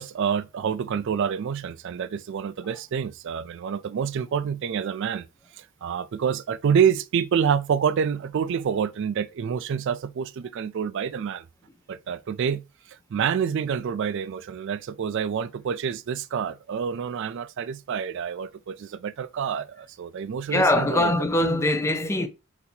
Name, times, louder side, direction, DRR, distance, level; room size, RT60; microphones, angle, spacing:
voice 1, 0.0-5.3 5.6-11.5 11.9-21.1, right 7 dB, 55° right, 0.3 m, -27 dB
voice 2, 20.5-22.3, left 1 dB, 15° left, 0.4 m, -22 dB
4.2 x 4.0 x 2.7 m
head